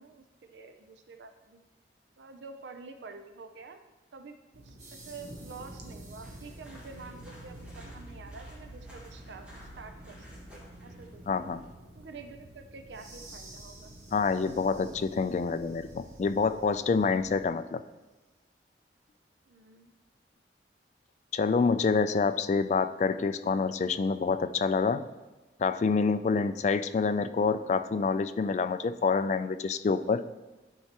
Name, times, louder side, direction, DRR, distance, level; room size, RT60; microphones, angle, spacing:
voice 1, 0.0-1.6 2.2-3.8 4.1-4.4 4.6-9.5 9.8-10.3 10.5-11.5 11.9-13.9 19.5-19.9, right 4 dB, 85° right, 7 dB, 0.5 m, -48 dB
sound 1, 4.5-17.4, right 1 dB, 65° right, 0.8 m, -49 dB
sound 2, 4.8-7.8 12.9-17.0, right 2 dB, 45° right, 1.5 m, -55 dB
sound 3, 6.2-11.7, left 1 dB, 5° right, 1.8 m, -55 dB
voice 2, 11.3-11.6 14.1-17.8 21.3-25.1 25.6-30.2, left 4 dB, 40° left, 12 dB, 0.3 m, -27 dB
11.0 x 4.6 x 2.9 m, 1.2 s
head